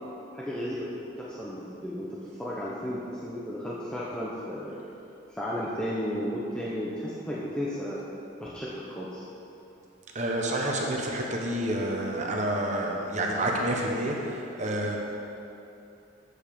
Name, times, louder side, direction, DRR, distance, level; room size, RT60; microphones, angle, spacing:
voice 1, 0.3-4.8 5.3-8.0 8.4-9.2, equal, 5° left, -8 dB, 0.8 m, -34 dB
voice 2, 10.1-15.0, right 1 dB, 40° right, -1 dB, 1.1 m, -29 dB
8.1 x 5.4 x 6.8 m, 2.8 s
head